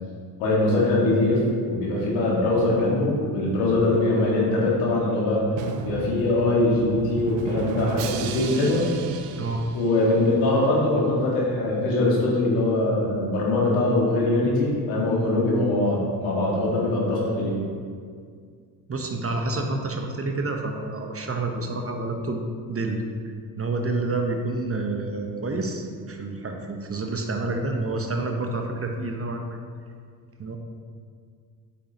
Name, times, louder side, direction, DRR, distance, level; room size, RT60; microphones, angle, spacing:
voice 1, 0.4-5.4 5.8-8.8 9.7-17.6, left 2 dB, 80° left, -4 dB, 1.9 m, -22 dB
Drum, 5.6-10.4, right 6 dB, 75° right, 0.7 m, -33 dB
voice 2, 18.9-23.0 23.6-29.6 30.4-30.6, right 2 dB, 30° right, 3 dB, 1.0 m, -28 dB
8.2 x 6.2 x 2.9 m, 2.1 s
hypercardioid pair, 50°, 49 cm